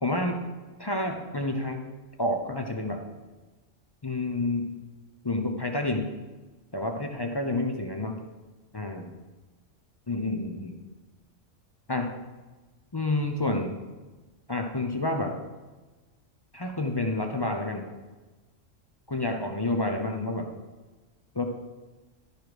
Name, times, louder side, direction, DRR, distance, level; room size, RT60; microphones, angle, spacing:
voice 1, 0.0-0.4 0.8-1.8 2.2-3.0 4.0-4.7 5.2-6.1 6.7-8.2 8.7-9.1 10.1-10.8 11.9-12.1 12.9-13.8 14.5-15.4 16.5-17.9 19.1-20.6 21.3-21.4, left 2 dB, 30° left, 3 dB, 0.5 m, -29 dB
12.0 x 4.8 x 4.8 m, 1.2 s
omnidirectional pair, 1.3 m